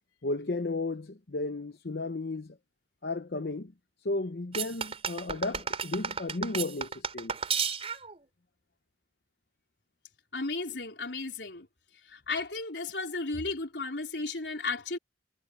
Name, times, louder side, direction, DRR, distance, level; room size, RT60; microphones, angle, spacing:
voice 1, 0.2-2.6 3.0-3.7 4.0-7.3, left 2 dB, 65° left, 0.8 m, -33 dB
sound 1, 4.5-8.2, right 6 dB, 35° right, 4.5 m, -33 dB
voice 2, 10.3-11.7 12.1-15.0, left 3 dB, 85° left, 3.8 m, -34 dB
head